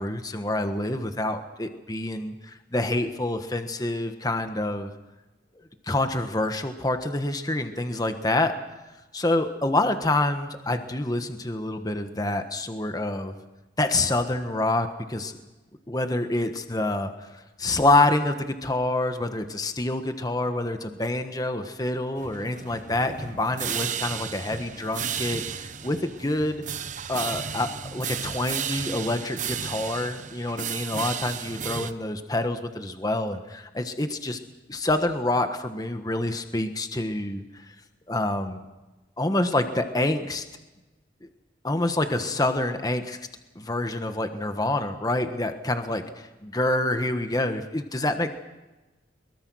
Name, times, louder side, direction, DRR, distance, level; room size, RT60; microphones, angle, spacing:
voice 1, 0.0-4.9 5.9-8.5 9.1-13.4 13.8-15.4 15.9-17.3 17.6-26.6 27.1-34.4 34.7-37.6 38.1-38.6 39.2-40.4 41.6-43.2 43.5-48.3, left 2 dB, 20° left, 7 dB, 1.4 m, -27 dB
Noisy Xylophone Snare and Cymbal Ambience, 22.2-31.9, right 8 dB, 45° right, 1.0 m, -34 dB
23.0 x 22.5 x 6.3 m, 1.1 s
head